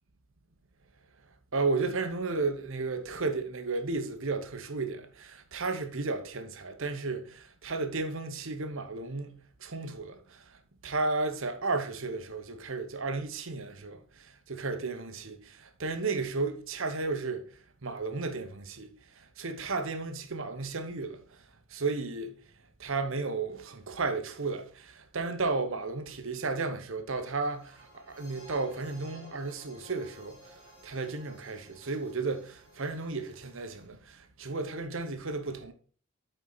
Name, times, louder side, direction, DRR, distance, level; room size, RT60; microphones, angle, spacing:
voice 1, 1.5-10.6 10.8-17.5 17.8-21.4 21.7-22.3 22.8-30.5 30.8-35.7, right 3 dB, 60° right, 1.0 m, -33 dB
sound 1, 27.4-33.9, equal, 20° left, 3.6 m, -55 dB
9.4 x 4.5 x 4.0 m
head